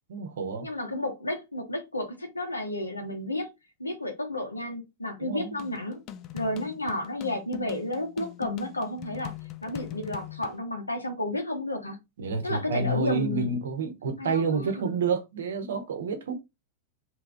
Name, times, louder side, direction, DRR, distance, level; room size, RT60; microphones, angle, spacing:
voice 1, 0.1-0.7 5.2-5.6 12.2-16.3, right 4 dB, 65° right, 0.9 m, -29 dB
voice 2, 0.6-3.5 3.8-6.0 6.3-9.3 9.6-12.0 12.4-13.5 14.2-15.0, left 1 dB, 80° left, 1.1 m, -32 dB
sound 1, 5.6-10.6, left 12 dB, 35° left, 0.5 m, -41 dB
3.4 x 2.9 x 3.8 m
figure-of-eight pair, 90°, 0 cm